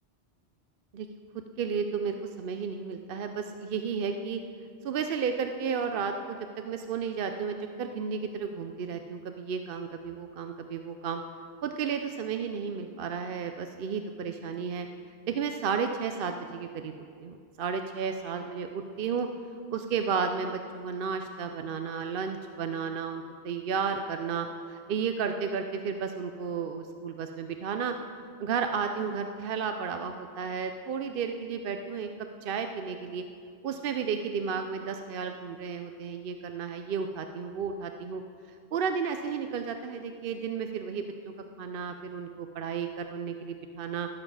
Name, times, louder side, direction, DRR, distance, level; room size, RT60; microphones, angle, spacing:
voice 1, 1.6-4.4 4.8-11.2 11.6-14.9 15.3-16.9 17.2-19.3 19.7-27.9 28.4-32.1 32.4-33.2 33.6-38.2 38.7-44.1, right 6 dB, 60° right, 6 dB, 0.7 m, -33 dB
18.0 x 7.4 x 4.8 m, 2.2 s
omnidirectional pair, 1.1 m